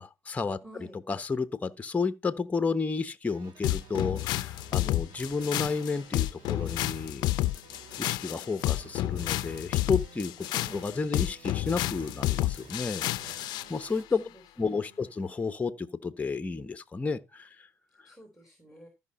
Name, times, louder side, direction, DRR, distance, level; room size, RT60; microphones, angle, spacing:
voice 1, 0.0-0.6 1.1-7.3 8.0-10.3 10.8-14.2 14.6-17.7, left 4 dB, 20° left, 1.0 m, -32 dB
voice 2, 0.6-1.0 4.8-5.1 10.4-10.9 13.7-14.4 14.9-15.1 18.0-18.9, right 1 dB, ahead, 3.6 m, -51 dB
sound 1, 3.3-14.0, right 6 dB, 85° right, 2.4 m, -53 dB
sound 2, 3.6-13.7, left 16 dB, 70° left, 0.5 m, -30 dB
13.5 x 5.7 x 4.2 m
cardioid pair, 105°, 8 cm